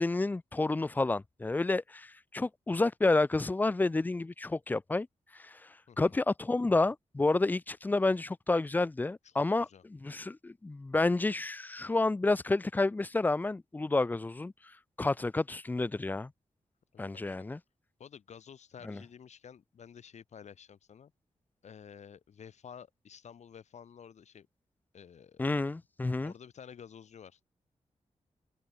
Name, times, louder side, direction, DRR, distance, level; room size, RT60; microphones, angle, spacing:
voice 1, 0.0-5.1 5.3-5.6 6.0-14.5 15.0-16.3 17.0-17.6 18.8-19.0 25.4-26.3, left 2 dB, 15° left, 0.4 m, -30 dB
voice 2, 9.2-9.8 16.9-17.5 18.0-21.1 21.6-24.5 24.9-25.5 26.2-27.4, left 7 dB, 70° left, 2.2 m, -51 dB
wide cardioid pair, 145°, 12 cm